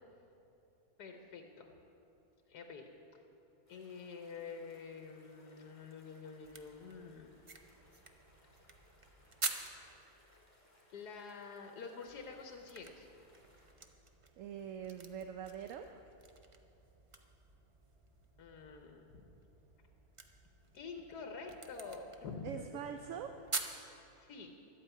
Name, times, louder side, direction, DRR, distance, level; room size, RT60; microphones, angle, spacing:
voice 1, 1.0-1.7 2.5-3.2 3.7-7.3 10.9-13.1 18.4-19.2 20.7-22.6 24.2-24.5, left 5 dB, 90° left, 4 dB, 1.5 m, -48 dB
sound 1, 3.7-13.7, left 1 dB, 10° left, 2.0 m, -68 dB
sound 2, 6.4-10.0 12.1-23.8, right 3 dB, 35° right, 0.5 m, -47 dB
voice 2, 14.4-16.0 22.4-23.6, right 8 dB, 65° right, 6 dB, 0.9 m, -44 dB
12.0 x 8.9 x 8.3 m, 2.8 s
omnidirectional pair, 1.7 m